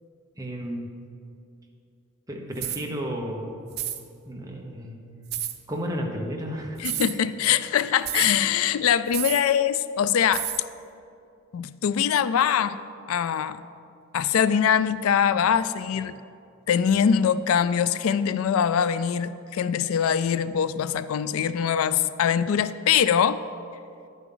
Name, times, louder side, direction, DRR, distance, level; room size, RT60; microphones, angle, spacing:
voice 1, 0.4-0.9 2.3-3.7 4.3-5.0 5.7-6.8, equal, 15° right, 0 dB, 1.0 m, -32 dB
sound 1, 2.6-2.9 3.7-4.0 5.3-5.6 6.8-7.2 8.1-8.4 9.1-9.5 10.3-10.6, right 12 dB, 45° right, 0.5 m, -30 dB
voice 2, 6.8-10.4 11.5-12.8 13.1-13.6 14.1-16.2 16.7-23.4, left 8 dB, 75° left, 14 dB, 0.3 m, -23 dB
11.0 x 9.2 x 3.9 m, 2.6 s
head